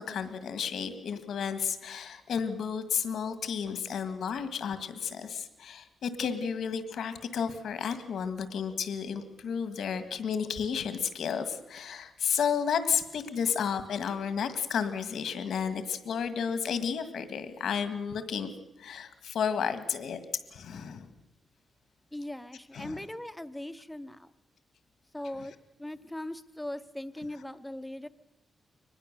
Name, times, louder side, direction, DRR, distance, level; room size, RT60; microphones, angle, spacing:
voice 1, 0.0-18.5 18.8-21.1 22.7-23.1, left 7 dB, 80° left, 10 dB, 1.8 m, -32 dB
voice 2, 22.1-24.3 25.1-28.1, left 1 dB, 5° left, 12 dB, 0.7 m, -40 dB
24.0 x 20.0 x 6.8 m, 0.94 s
wide cardioid pair, 175°, 0 cm